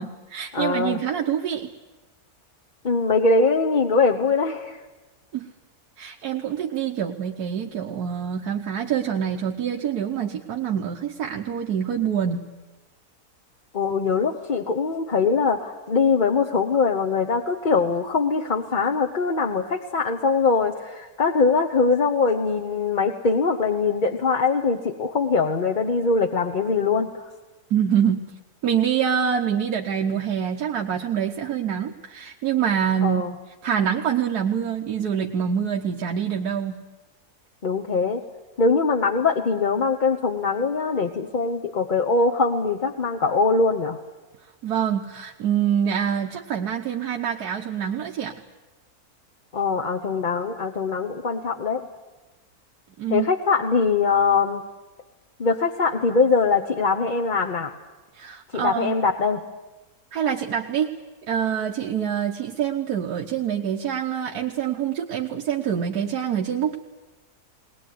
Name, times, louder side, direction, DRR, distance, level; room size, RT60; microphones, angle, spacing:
voice 1, 0.0-1.7 5.3-5.5 6.0-12.5 27.7-28.2 28.6-33.2 33.6-36.8 44.6-48.4 53.0-53.3 58.1-59.0 60.1-60.9 61.3-66.8, right 8 dB, 85° right, 1 dB, 1.5 m, -25 dB
voice 2, 0.5-1.0 2.8-4.8 13.7-27.1 33.0-33.3 37.6-38.2 38.6-44.0 49.5-51.9 53.1-54.6 55.4-57.7 58.5-59.4, left 4 dB, 35° left, 2 dB, 0.9 m, -22 dB
20.0 x 19.5 x 9.4 m, 1.2 s
omnidirectional pair, 1.6 m